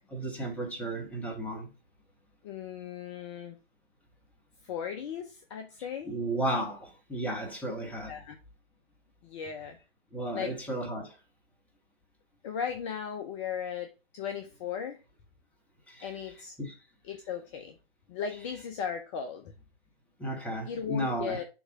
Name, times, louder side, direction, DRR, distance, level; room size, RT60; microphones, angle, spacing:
voice 1, 0.1-1.7 6.0-8.1 10.1-11.2 15.9-16.1 16.6-16.7 20.2-21.4, right 1 dB, 5° left, 1.5 m, -34 dB
voice 2, 2.4-3.6 4.6-6.1 8.1-8.4 9.2-9.8 10.3-10.6 12.4-15.0 16.0-16.5 17.0-17.8 18.1-19.5 20.7-21.4, left 7 dB, 30° left, 0.7 m, -37 dB
7.1 x 3.0 x 4.7 m
figure-of-eight pair, 130°, 30 cm